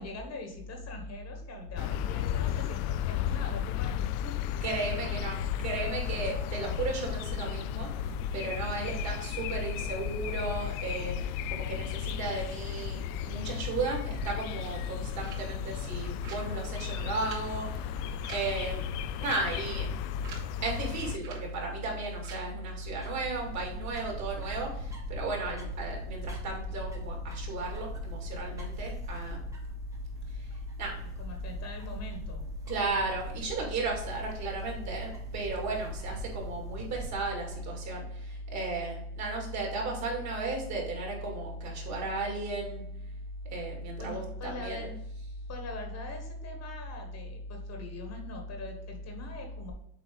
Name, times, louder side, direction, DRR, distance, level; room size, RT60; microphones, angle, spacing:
voice 1, 0.0-4.6 31.2-32.4 44.0-44.9 45.5-49.7, left 2 dB, 35° left, 3 dB, 1.3 m, -43 dB
sound 1, 1.8-21.2, left 12 dB, 65° left, 0.5 m, -35 dB
voice 2, 4.6-17.9 18.3-19.9 20.6-29.4 30.3-30.5 30.8-31.0 32.7-42.8 43.5-45.3, right 2 dB, 40° right, -1 dB, 2.6 m, -34 dB
sound 2, 14.6-22.3, right 5 dB, 65° right, 2.7 m, -52 dB
sound 3, 22.5-37.7, left 1 dB, 5° right, 1.1 m, -43 dB
7.4 x 4.4 x 3.9 m, 0.75 s
cardioid pair, 150°, 44 cm